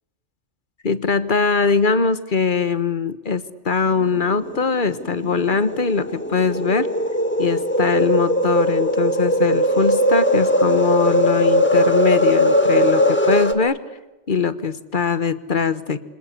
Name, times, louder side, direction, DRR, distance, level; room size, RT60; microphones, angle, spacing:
voice 1, 0.8-6.9 7.4-13.8 14.3-16.0, left 5 dB, 45° left, 14 dB, 1.3 m, -21 dB
sound 1, 4.5-13.5, equal, 10° left, 1.7 m, -19 dB
27.5 x 26.0 x 8.4 m, 1.1 s
omnidirectional pair, 1.2 m